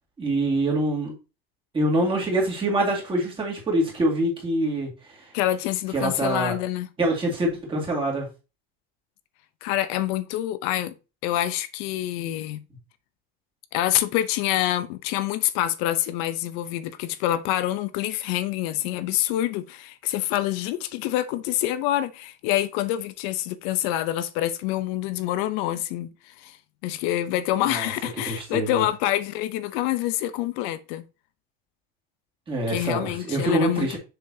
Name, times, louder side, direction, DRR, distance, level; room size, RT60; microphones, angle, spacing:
voice 1, 0.2-1.1 1.7-5.3 5.9-6.5 7.0-8.3 27.6-27.9 28.3-28.8 32.5-34.0, right 1 dB, 20° right, 2.2 m, -25 dB
voice 2, 5.3-6.9 9.6-10.9 11.2-12.6 13.7-26.6 26.8-31.0 32.7-34.0, left 13 dB, 85° left, 0.8 m, -26 dB
6.9 x 5.7 x 2.8 m
cardioid pair, 170°, 29 cm